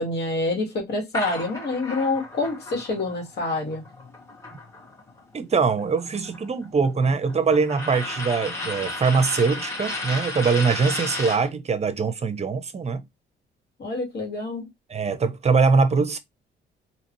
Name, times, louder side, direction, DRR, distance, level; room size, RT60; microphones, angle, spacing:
voice 1, 0.0-3.8 13.8-14.7, left 2 dB, 55° left, 2.0 m, -27 dB
sound 1, 1.1-5.2 5.5-11.5, left 2 dB, 15° left, 2.2 m, -34 dB
voice 2, 5.3-13.0 14.9-16.2, right 4 dB, 35° right, 0.7 m, -22 dB
3.9 x 2.9 x 3.0 m
cardioid pair, 90°, 20 cm